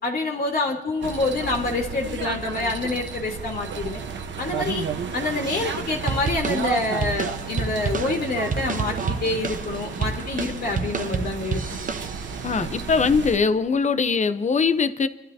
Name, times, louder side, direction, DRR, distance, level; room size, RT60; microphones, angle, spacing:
voice 1, 0.0-4.0 4.4-4.8 5.1-11.8, left 2 dB, 55° left, -1 dB, 2.4 m, -27 dB
sound 1, 1.0-13.4, right 6 dB, 75° right, 1.1 m, -32 dB
sound 2, 6.1-12.5, right 5 dB, 45° right, 0.9 m, -30 dB
voice 2, 12.4-15.1, left 5 dB, 40° left, 11 dB, 0.8 m, -21 dB
28.0 x 12.5 x 2.8 m, 1.1 s
cardioid pair, 100°, 19 cm